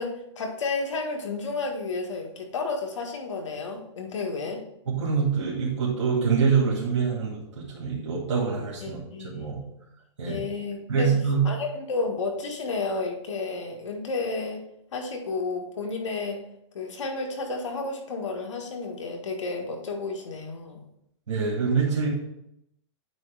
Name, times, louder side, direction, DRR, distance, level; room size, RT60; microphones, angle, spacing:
voice 1, 0.0-4.6 8.8-9.5 10.3-11.1 11.4-14.6 14.9-16.4 16.7-20.8, left 3 dB, 85° left, 2 dB, 1.8 m, -31 dB
voice 2, 4.9-9.0 9.3-9.6 10.2-10.4 10.9-11.4 21.3-22.1, right 5 dB, 80° right, -5 dB, 2.2 m, -25 dB
9.0 x 3.1 x 5.0 m, 0.80 s
hypercardioid pair, 145°, 15 cm